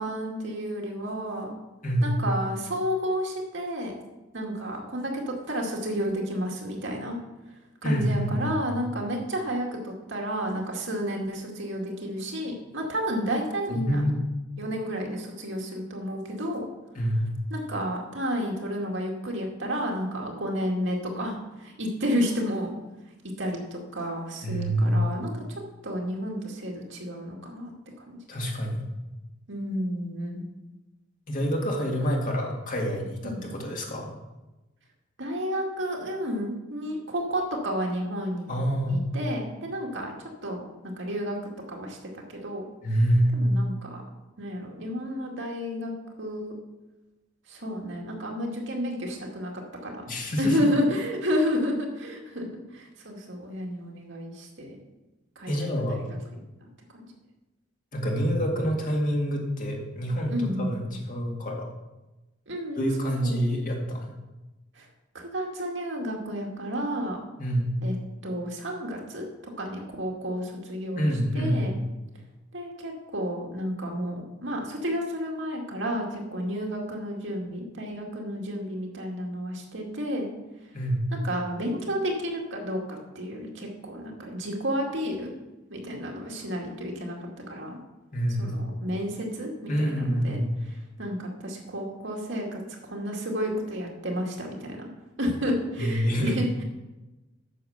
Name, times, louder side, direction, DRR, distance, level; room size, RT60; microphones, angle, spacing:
voice 1, 0.0-1.5 2.0-3.9 4.3-7.2 7.8-14.0 14.6-16.7 17.5-22.7 23.4-27.7 28.0-28.2 29.5-30.4 33.2-33.5 35.2-38.5 38.9-40.1 40.4-41.4 41.7-42.7 43.3-44.0 44.4-45.9 46.2-46.5 47.5-49.9 50.4-54.8 55.4-56.2 56.9-57.0 60.3-60.7 62.5-63.3 64.8-64.9 65.1-67.2 67.8-68.0 68.2-69.3 69.6-71.1 71.3-71.8 72.5-80.3 81.2-85.3 85.7-87.8 88.4-90.4 90.7-94.9 95.2-96.6, equal, 65° right, 0 dB, 2.2 m, -31 dB
voice 2, 7.8-8.7 13.7-14.2 16.9-17.3 24.4-25.1 28.3-28.8 31.3-34.1 38.5-39.1 42.8-43.3 50.1-50.7 55.5-56.0 57.9-61.7 62.8-64.1 67.4-67.7 70.9-71.7 80.7-81.1 88.1-88.6 89.7-90.6 95.8-96.4, equal, 40° left, -1 dB, 2.2 m, -27 dB
9.2 x 6.8 x 6.5 m, 1.1 s
head